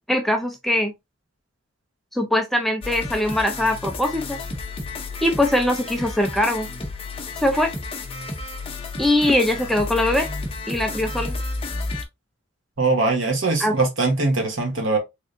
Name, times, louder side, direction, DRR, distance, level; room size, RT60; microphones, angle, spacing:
voice 1, 0.1-0.9 2.1-4.4 5.2-6.7 7.4-7.7 9.0-10.3 10.7-11.3 13.6-13.8, left 1 dB, ahead, 0.3 m, -21 dB
sound 1, 2.8-12.0, left 3 dB, 25° left, 0.7 m, -31 dB
voice 2, 12.8-15.0, right 3 dB, 60° right, 1.3 m, -21 dB
3.5 x 3.3 x 2.6 m
head